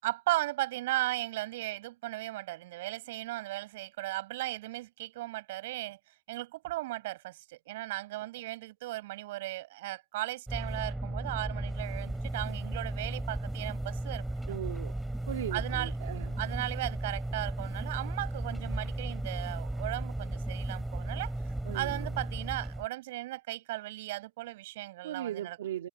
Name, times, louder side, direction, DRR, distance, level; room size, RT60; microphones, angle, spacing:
voice 1, 0.0-6.0 6.3-14.6 15.5-15.9 16.4-21.3 21.7-25.6, right 18 dB, 50° right, 7.2 m, -36 dB
sound 1, 10.5-22.9, right 1 dB, ahead, 7.8 m, -35 dB
voice 2, 14.5-14.9 15.3-16.4 21.7-22.2 25.0-25.9, right 11 dB, 75° right, 2.2 m, -38 dB
supercardioid pair, 170°, 0 cm